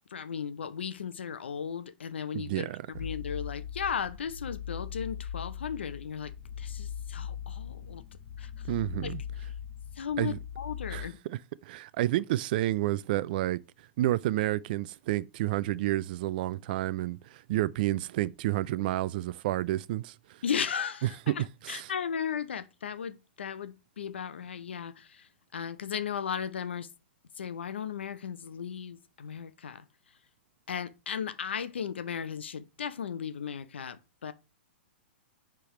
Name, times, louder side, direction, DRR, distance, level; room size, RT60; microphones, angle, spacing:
voice 1, 0.1-2.7 3.0-8.0 8.4-8.5 9.0-9.1 10.0-11.2 20.4-26.9 27.4-29.8 30.7-34.3, left 7 dB, 80° left, 0.6 m, -36 dB
voice 2, 2.3-2.8 8.7-9.2 10.2-10.4 10.9-13.6 14.0-20.4 21.3-21.4 21.6-21.9, right 15 dB, 55° right, 0.4 m, -30 dB
sound 1, 2.9-11.1, left 8 dB, 55° left, 1.5 m, -40 dB
9.8 x 3.4 x 3.1 m
hypercardioid pair, 120°, 6 cm